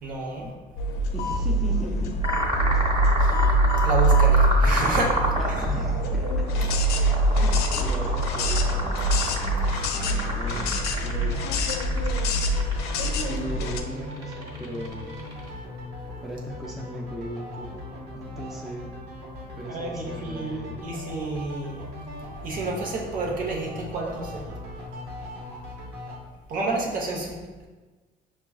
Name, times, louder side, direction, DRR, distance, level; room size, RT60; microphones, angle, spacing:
voice 1, 0.0-0.5 3.2-3.5 3.8-5.2 19.7-21.9 22.4-24.5 26.5-27.7, right 2 dB, 55° right, -2 dB, 0.9 m, -30 dB
sound 1, 0.8-13.8, right 1 dB, 75° left, 0.4 m, -24 dB
voice 2, 1.1-2.2 2.7-3.0 5.5-6.7 7.3-8.9 10.0-11.6 13.3-15.2 16.2-17.8 18.1-18.9 19.6-20.9, equal, ahead, -2 dB, 0.4 m, -37 dB
sound 2, 2.2-15.5, right 1 dB, 35° right, 1.4 m, -30 dB
sound 3, 8.5-26.2, left 1 dB, 80° right, 1.1 m, -40 dB
5.9 x 2.3 x 2.3 m, 1.3 s
cardioid pair, 110°, 17 cm